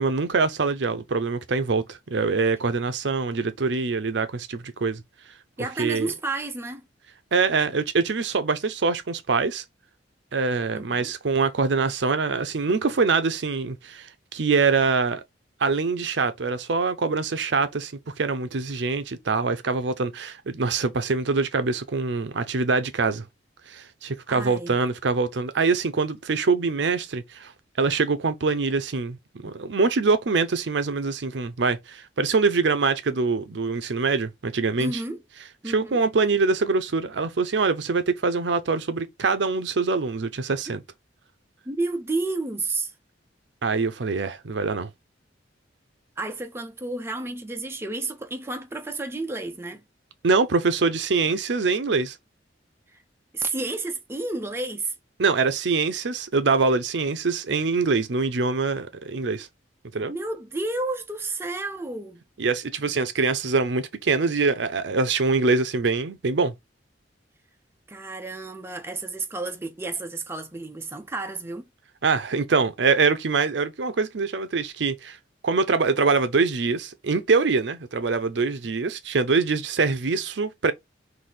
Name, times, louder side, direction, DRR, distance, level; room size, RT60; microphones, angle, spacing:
voice 1, 0.0-5.0 5.6-6.1 7.3-9.6 10.3-15.2 15.6-23.3 23.7-27.5 27.8-35.0 35.6-40.8 43.6-44.9 50.2-52.2 55.2-59.5 59.9-60.1 62.4-66.5 72.0-75.2 75.4-80.7, right 4 dB, 70° right, 0.6 m, -24 dB
voice 2, 5.6-6.8 10.7-11.1 24.3-24.8 34.8-35.2 35.6-36.0 41.7-42.9 46.2-49.8 52.9-53.0 53.3-54.9 60.1-62.2 67.9-71.7, right 2 dB, 15° right, 0.6 m, -31 dB
4.0 x 2.7 x 4.0 m
head